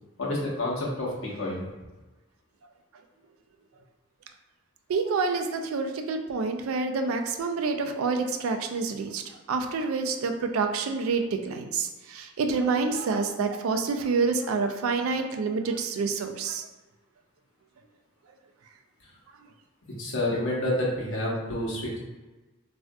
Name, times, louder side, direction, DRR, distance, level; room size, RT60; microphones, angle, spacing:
voice 1, 0.2-1.7 20.0-22.0, left 1 dB, 65° left, -5 dB, 0.9 m, -29 dB
voice 2, 4.9-9.2 9.5-16.6, right 4 dB, 85° right, 5 dB, 0.4 m, -27 dB
3.6 x 2.4 x 2.2 m, 1.2 s
head